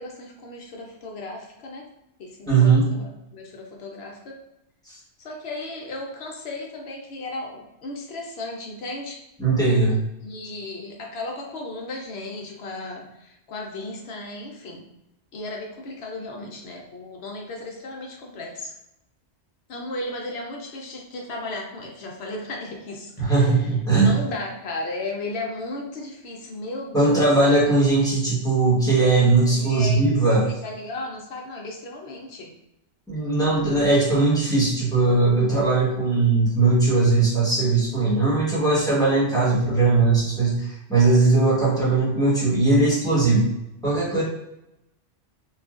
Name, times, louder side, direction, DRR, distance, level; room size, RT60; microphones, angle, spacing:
voice 1, 0.0-1.8 2.2-4.4 5.2-9.2 10.2-14.8 15.3-18.7 19.7-27.3 29.4-30.0 30.4-32.5, left 2 dB, 70° left, 0 dB, 0.8 m, -35 dB
voice 2, 2.5-2.8 4.9-5.0 9.4-10.0 23.2-24.1 26.9-30.5 33.1-43.5 43.8-44.2, right 3 dB, 5° left, -8 dB, 0.9 m, -19 dB
3.2 x 2.3 x 2.4 m, 0.86 s
omnidirectional pair, 1.2 m